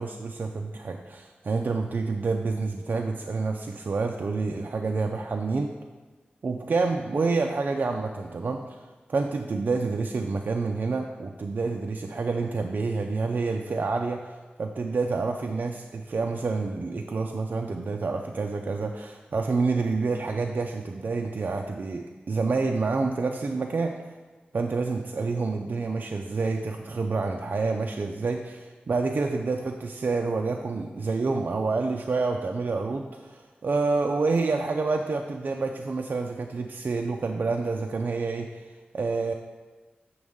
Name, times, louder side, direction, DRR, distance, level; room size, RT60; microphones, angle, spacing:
voice 1, 0.0-5.7 6.4-8.8 9.1-24.0 24.5-38.6 38.9-39.3, right 4 dB, 60° right, 3 dB, 0.4 m, -28 dB
7.8 x 6.1 x 3.6 m, 1.3 s
wide cardioid pair, 95°, 4 cm